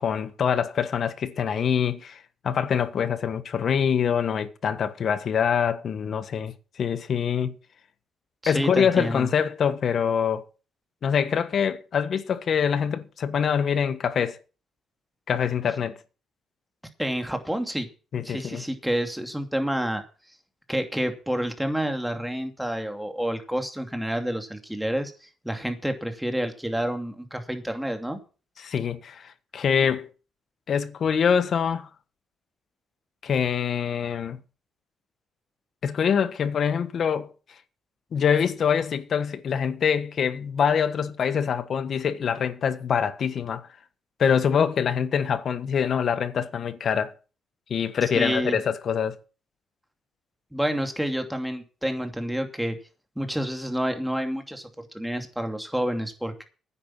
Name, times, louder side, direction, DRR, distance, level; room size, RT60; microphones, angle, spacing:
voice 1, 0.0-7.5 8.5-10.4 11.0-14.4 15.3-16.0 18.1-18.6 28.6-30.1 30.7-31.9 33.2-34.4 35.8-37.3 38.1-43.7 44.2-47.1 47.7-49.1, left 7 dB, 55° left, 1.3 m, -25 dB
voice 2, 8.4-9.3 17.0-17.9 18.2-20.0 20.7-28.2 48.1-48.6 50.5-52.8 53.2-56.5, equal, 5° right, 2.6 m, -29 dB
10.0 x 8.6 x 7.4 m
cardioid pair, 90°, 0 cm